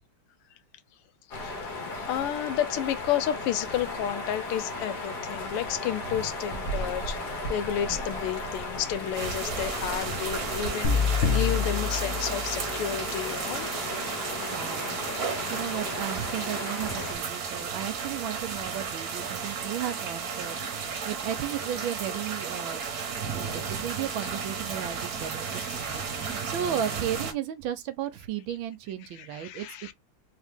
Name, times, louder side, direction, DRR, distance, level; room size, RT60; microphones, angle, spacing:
sound 1, 1.3-17.1, left 2 dB, 55° left, 1.6 m, -35 dB
voice 1, 1.9-13.8 25.5-26.6 29.1-29.9, left 11 dB, 90° left, 1.6 m, -32 dB
sound 2, 9.1-27.3, right 6 dB, 55° right, 1.2 m, -34 dB
sound 3, 10.8-13.0, left 6 dB, 75° left, 0.6 m, -27 dB
voice 2, 14.5-15.2 15.5-22.8 23.3-29.6, right 10 dB, 75° right, 1.3 m, -34 dB
3.8 x 2.8 x 3.3 m
omnidirectional pair, 2.4 m